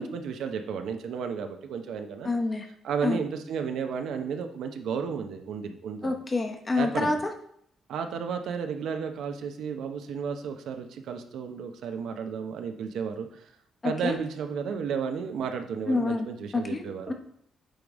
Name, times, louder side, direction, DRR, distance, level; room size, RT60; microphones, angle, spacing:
voice 1, 0.0-2.3 2.8-6.1 6.8-7.2 7.9-13.4 13.8-17.1, right 6 dB, 75° right, 6 dB, 0.7 m, -33 dB
voice 2, 2.2-2.6 3.0-3.2 6.0-7.2 13.8-14.1 15.9-16.3 16.5-17.1, left 3 dB, 25° left, 5 dB, 0.8 m, -27 dB
8.9 x 3.4 x 3.6 m, 0.68 s
cardioid pair, 130°, 0 cm